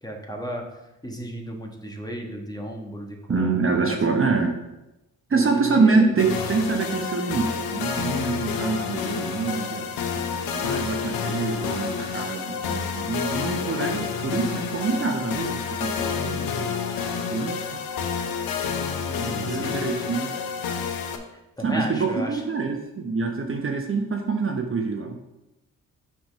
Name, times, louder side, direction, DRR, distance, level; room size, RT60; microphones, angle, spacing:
voice 1, 0.0-0.6 1.0-4.2 5.3-6.0 19.0-19.8 21.6-22.4, equal, 10° left, 1 dB, 1.3 m, -34 dB
voice 2, 3.3-4.6 5.3-16.7 17.3-17.8 19.1-20.3 21.6-25.2, right 4 dB, 40° right, 3 dB, 0.8 m, -26 dB
sound 1, 6.2-21.2, left 6 dB, 85° left, 0.7 m, -29 dB
5.8 x 3.6 x 5.5 m, 0.95 s
cardioid pair, 65°, 34 cm